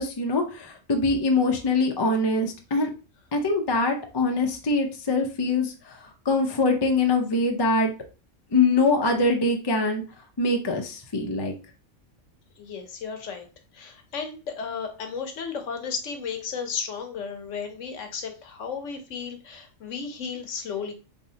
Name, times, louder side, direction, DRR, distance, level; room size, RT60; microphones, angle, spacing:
voice 1, 0.0-2.9 3.3-7.9 8.5-10.0 10.4-11.5, left 3 dB, 30° left, 3 dB, 0.4 m, -23 dB
voice 2, 12.6-13.5 13.7-20.9, left 6 dB, 70° left, 5 dB, 1.1 m, -34 dB
4.2 x 3.3 x 2.8 m, 0.33 s
omnidirectional pair, 1.4 m